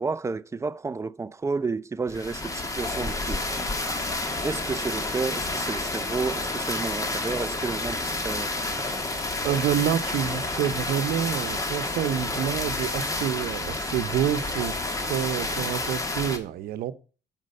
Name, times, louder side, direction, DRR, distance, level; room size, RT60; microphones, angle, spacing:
voice 1, 0.0-3.4 4.0-4.1 4.4-8.5, right 4 dB, 20° right, 0.4 m, -31 dB
sound 1, 2.1-16.4, left 2 dB, 20° left, 1.3 m, -30 dB
voice 2, 9.4-14.8 15.0-16.9, right 10 dB, 75° right, 0.8 m, -28 dB
7.4 x 5.3 x 6.4 m
cardioid pair, 100°, 16 cm